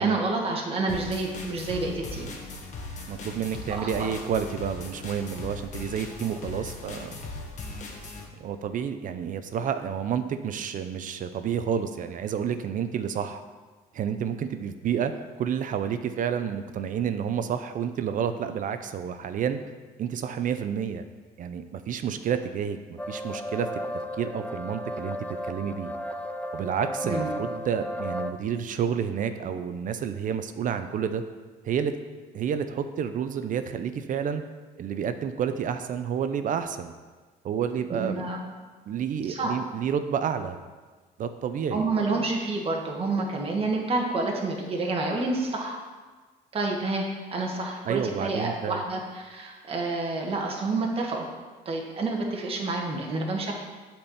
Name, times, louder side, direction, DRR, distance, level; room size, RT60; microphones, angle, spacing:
voice 1, 0.0-2.3 3.7-3.9 27.0-27.3 37.9-38.4 39.3-39.5 41.7-45.8 46.5-51.3 51.6-53.5, right 3 dB, 35° right, 0 dB, 1.5 m, -28 dB
sound 1, 0.9-8.3, left 2 dB, 45° left, 1.5 m, -39 dB
voice 2, 3.1-7.2 8.4-13.4 13.9-19.6 20.0-21.1 21.4-23.7 24.2-25.9 26.5-31.2 31.6-32.0 32.3-34.4 34.8-36.9 37.4-38.3 38.9-40.6 41.2-41.8 47.8-48.8, right 8 dB, 50° right, 9 dB, 0.6 m, -30 dB
sound 2, 23.0-28.3, equal, 10° left, 0.5 m, -34 dB
8.5 x 4.5 x 7.2 m, 1.4 s
cardioid pair, 110°, 17 cm